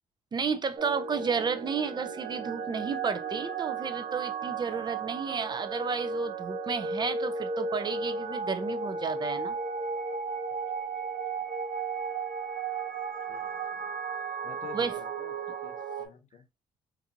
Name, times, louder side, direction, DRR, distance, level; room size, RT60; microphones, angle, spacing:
voice 1, 0.3-9.6 14.7-15.0, right 5 dB, 30° right, 0.6 m, -32 dB
sound 1, 0.8-16.1, right 4 dB, 70° right, 0.9 m, -34 dB
voice 2, 13.3-13.8 14.4-16.5, left 8 dB, 55° left, 0.9 m, -50 dB
4.0 x 2.7 x 2.6 m
supercardioid pair, 80°, 14 cm